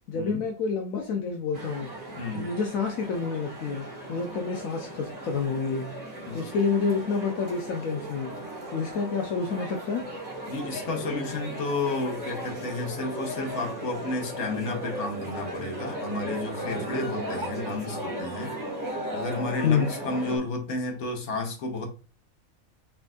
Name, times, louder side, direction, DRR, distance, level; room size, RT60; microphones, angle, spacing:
voice 1, 0.1-1.9 2.3-8.4 8.7-10.0 19.6-19.9, left 5 dB, 75° left, 2 dB, 1.1 m, -28 dB
sound 1, 1.5-20.4, right 1 dB, 30° right, 1.6 m, -36 dB
voice 2, 2.2-2.5 6.3-6.4 10.5-21.9, left 2 dB, 60° left, 3 dB, 1.3 m, -32 dB
4.6 x 4.0 x 2.4 m, 0.33 s
omnidirectional pair, 1.5 m